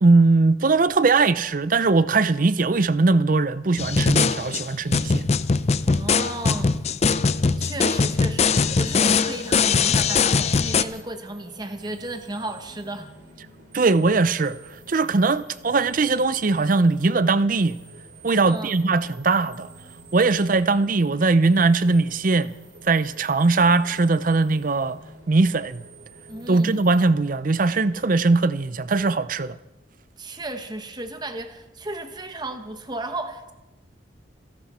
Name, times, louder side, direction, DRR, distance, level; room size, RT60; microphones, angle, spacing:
voice 1, 0.0-5.3 13.7-14.6 14.9-17.8 18.2-19.7 20.1-22.5 22.8-25.0 25.3-25.8 26.5-29.6, right 3 dB, 40° right, 0.5 m, -20 dB
Distorted Drums Lo-Fi Random, 3.8-10.8, left 5 dB, 35° left, 0.5 m, -21 dB
voice 2, 5.9-6.8 7.6-13.1 18.5-18.8 26.3-26.8 30.2-33.5, right 2 dB, 20° right, 1.1 m, -34 dB
sound 1, 8.4-27.1, right 2 dB, 60° right, 3.0 m, -48 dB
27.0 x 11.5 x 4.3 m
head